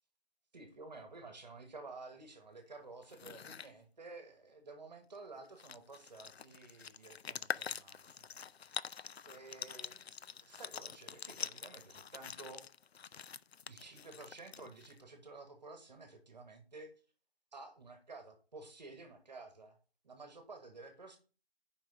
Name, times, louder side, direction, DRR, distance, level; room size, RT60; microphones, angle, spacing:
voice 1, 0.5-8.4 9.2-12.7 13.7-16.9 17.5-19.8 20.0-21.2, right 3 dB, 45° right, 6 dB, 1.5 m, -52 dB
sound 1, 3.0-3.7 5.1-5.2 5.5-15.0, left 7 dB, 85° left, 0.5 m, -45 dB
6.3 x 5.1 x 5.1 m, 0.37 s
figure-of-eight pair, 165°, 30 cm